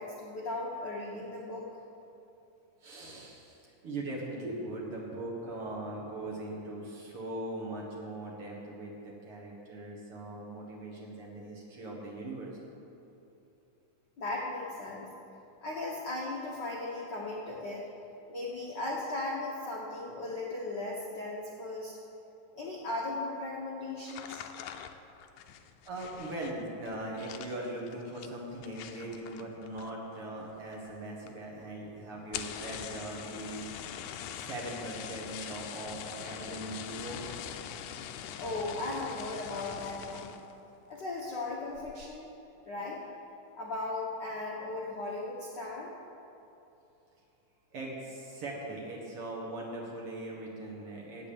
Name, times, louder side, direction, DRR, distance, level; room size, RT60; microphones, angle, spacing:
voice 1, 0.0-1.7 14.2-15.1 15.6-17.9 18.3-22.0 22.5-24.4 38.4-40.3 40.9-42.3 42.6-43.0 43.5-45.9, left 2 dB, 60° left, -4 dB, 1.1 m, -37 dB
voice 2, 2.8-12.6 25.9-33.7 34.3-37.2 47.7-51.3, right 1 dB, 50° right, -3 dB, 2.2 m, -40 dB
sound 1, 24.0-30.2 30.4-31.0 31.3-31.4 31.6-31.7 32.2-40.5 41.0-41.3 41.7-42.1, left 9 dB, 90° left, 1.5 m, -43 dB
9.0 x 8.1 x 8.6 m, 2.9 s
omnidirectional pair, 3.7 m